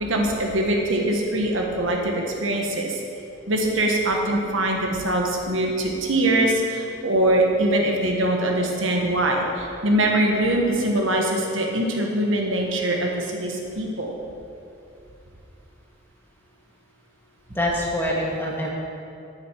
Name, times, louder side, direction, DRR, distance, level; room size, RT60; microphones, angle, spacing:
voice 1, 0.0-3.0 3.5-14.1, right 1 dB, 80° right, 1 dB, 1.4 m, -23 dB
voice 2, 17.5-18.7, left 1 dB, 10° left, -3 dB, 1.5 m, -25 dB
9.7 x 9.2 x 4.6 m, 2.6 s
head